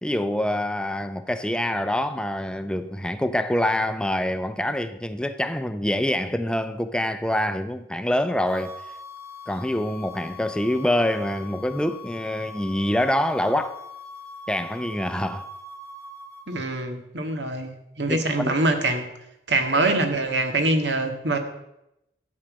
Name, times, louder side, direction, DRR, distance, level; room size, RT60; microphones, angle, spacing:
voice 1, 0.0-8.8 9.5-13.8 14.5-15.5 18.1-18.6, left 1 dB, 5° left, 0.5 m, -25 dB
sound 1, 8.5-16.6, left 3 dB, 15° right, 1.5 m, -41 dB
voice 2, 16.5-17.7 18.0-19.1 19.5-21.4, right 2 dB, 85° right, 1.9 m, -24 dB
13.0 x 8.9 x 6.3 m
head